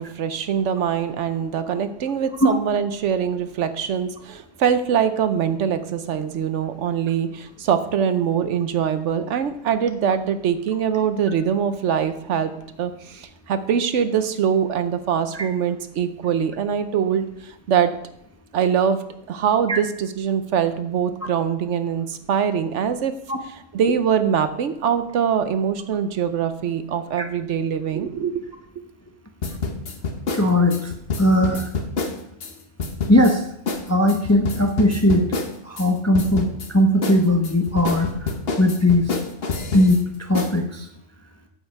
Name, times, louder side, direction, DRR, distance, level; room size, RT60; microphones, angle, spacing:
voice 1, 0.0-12.5 12.8-17.9 18.5-19.0 19.3-23.1 23.7-28.4, right 8 dB, 70° right, 10 dB, 1.0 m, -23 dB
sound 1, 29.4-32.5 32.8-33.3 33.7-33.8 34.1-35.9 36.1-36.7 37.0-40.0 40.3-40.5, left 4 dB, 50° left, 1.2 m, -27 dB
voice 2, 30.3-30.9 31.2-31.7 33.1-33.4 33.9-35.3 35.6-38.1 38.6-39.1 39.7-40.9, left 1 dB, 15° left, 4 dB, 0.5 m, -18 dB
8.8 x 7.6 x 4.5 m, 0.76 s
omnidirectional pair, 1.3 m